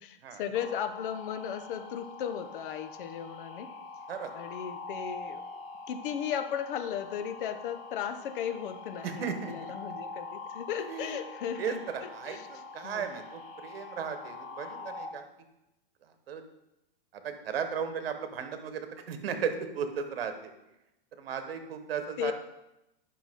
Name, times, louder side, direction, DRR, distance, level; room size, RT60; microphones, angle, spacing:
voice 1, 0.0-3.7 4.3-5.4 5.9-12.5 12.8-13.1 22.2-22.3, left 9 dB, 60° left, 9 dB, 0.8 m, -36 dB
sound 1, 0.5-15.1, left 3 dB, 25° left, 1.0 m, -44 dB
voice 2, 9.0-9.5 10.9-11.2 11.6-15.2 16.3-16.4 17.1-20.5 21.2-22.3, right 7 dB, 80° right, 8 dB, 1.3 m, -35 dB
10.0 x 5.8 x 3.7 m, 0.92 s
supercardioid pair, 150°, 29 cm